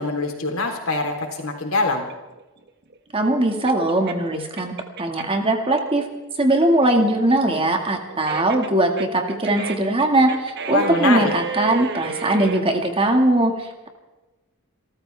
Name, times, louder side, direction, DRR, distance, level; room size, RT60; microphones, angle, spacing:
voice 1, 0.0-2.0 10.7-11.3, left 3 dB, 75° left, 2 dB, 3.6 m, -24 dB
sound 1, 2.0-5.5 5.9-12.6, right 4 dB, 50° right, 1.4 m, -33 dB
voice 2, 3.1-4.7 5.0-6.0 6.4-13.9, right 1 dB, 25° right, 4 dB, 1.9 m, -20 dB
28.5 x 14.0 x 3.5 m, 1.1 s
head